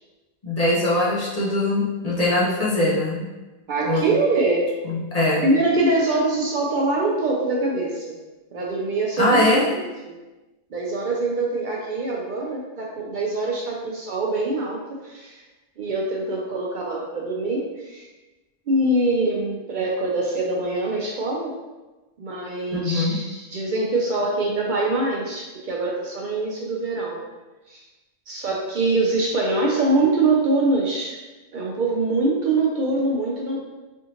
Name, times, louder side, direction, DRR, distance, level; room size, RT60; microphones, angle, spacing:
voice 1, 0.4-3.3 3.8-4.1 4.8-5.5 9.2-9.7 22.7-23.2, left 1 dB, 45° left, -6 dB, 0.6 m, -21 dB
voice 2, 3.7-4.7 5.4-8.2 8.5-9.8 10.1-10.2 10.7-15.4 15.8-18.1 18.7-21.5 22.2-27.2 27.7-27.8 28.3-31.2 31.5-33.6, right 2 dB, 60° right, -2 dB, 0.6 m, -24 dB
3.4 x 2.7 x 2.8 m, 1.1 s
omnidirectional pair, 1.0 m